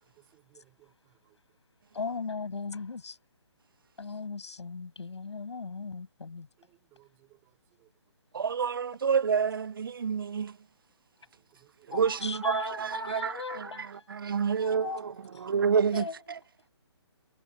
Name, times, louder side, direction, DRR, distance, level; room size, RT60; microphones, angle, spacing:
voice 1, 0.2-1.4 6.6-7.4 7.8-7.9 11.6-12.3 15.0-15.1, right 21 dB, 15° right, 4.6 m, -63 dB
voice 2, 1.9-3.2 4.0-6.5 11.9-14.1 14.6-15.7 15.9-16.2, left 4 dB, 80° left, 7.7 m, -38 dB
voice 3, 8.3-10.5 11.9-12.6 13.1-13.3 14.2-14.9 15.4-16.0, right 6 dB, 50° right, 0.6 m, -27 dB
hypercardioid pair, 170°, 14 cm